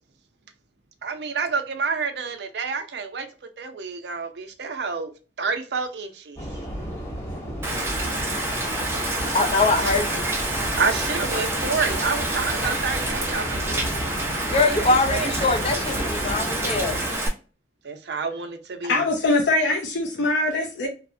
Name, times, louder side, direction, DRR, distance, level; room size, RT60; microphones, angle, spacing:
voice 1, 1.0-3.3 3.6-5.1 5.4-6.4 10.2-10.3 10.8-13.8 14.7-15.3 17.8-19.0, right 5 dB, 70° right, 0.5 m, -28 dB
sound 1, 6.4-17.1, equal, 15° left, 0.8 m, -33 dB
Rain, 7.6-17.3, right 2 dB, 15° right, 0.6 m, -28 dB
voice 2, 9.3-10.2 14.4-17.0, left 3 dB, 35° left, 0.5 m, -22 dB
voice 3, 18.9-20.9, left 2 dB, 80° left, 0.5 m, -22 dB
3.1 x 2.0 x 2.5 m
head